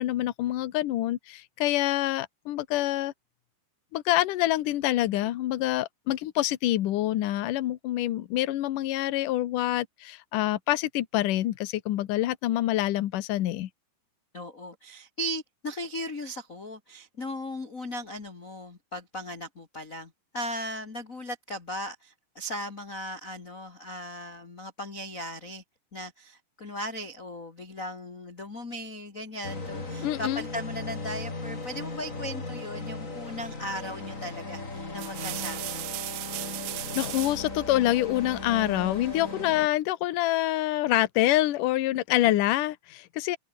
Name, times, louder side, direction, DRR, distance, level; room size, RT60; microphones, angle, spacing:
voice 1, 0.0-3.1 3.9-13.7 30.0-30.4 36.9-43.4, left 15 dB, 70° left, 2.2 m, -26 dB
voice 2, 14.3-25.6 25.9-35.9, equal, 35° left, 1.2 m, -37 dB
sound 1, 29.4-39.7, left 3 dB, 20° left, 3.8 m, -37 dB
sound 2, 33.8-34.1 34.8-37.5 38.9-39.6, right 19 dB, 80° right, 2.2 m, -37 dB
open air
omnidirectional pair, 5.2 m